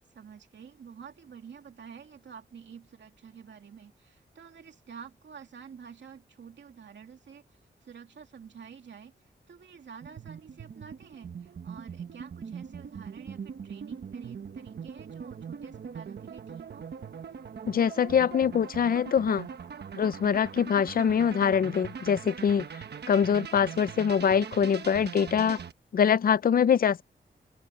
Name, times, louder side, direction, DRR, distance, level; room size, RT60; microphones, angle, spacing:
voice 1, 0.1-16.9, right 7 dB, 80° right, 2.7 m, -49 dB
sound 1, 10.0-25.7, right 6 dB, 65° right, 1.2 m, -41 dB
voice 2, 17.7-19.5 19.9-22.7 23.1-25.6 25.9-27.0, left 7 dB, 55° left, 0.5 m, -24 dB
wide cardioid pair, 130°, 19 cm